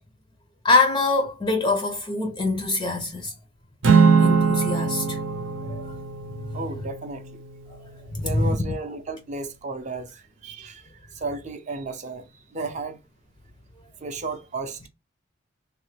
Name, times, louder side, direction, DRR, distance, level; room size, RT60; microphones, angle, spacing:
voice 1, 0.6-3.3 4.2-5.2 5.7-5.8 8.1-8.5, left 3 dB, 20° left, 0.4 m, -24 dB
Acoustic guitar / Strum, 3.8-8.3, right 5 dB, 85° right, 0.7 m, -22 dB
voice 2, 6.5-7.4 8.2-13.0 14.0-14.9, right 3 dB, 35° right, 0.5 m, -34 dB
3.2 x 2.1 x 3.1 m
head